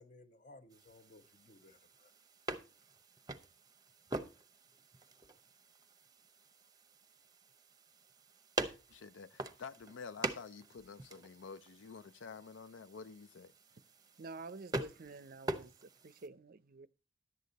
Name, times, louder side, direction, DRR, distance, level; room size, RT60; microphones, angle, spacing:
voice 1, 0.0-2.1, left 2 dB, 40° left, 1.0 m, -59 dB
sound 1, 0.7-16.3, right 2 dB, 20° right, 0.8 m, -45 dB
voice 2, 8.9-13.5, left 5 dB, 70° left, 0.5 m, -50 dB
voice 3, 14.2-16.9, right 3 dB, 50° right, 0.5 m, -49 dB
11.0 x 8.4 x 4.0 m
head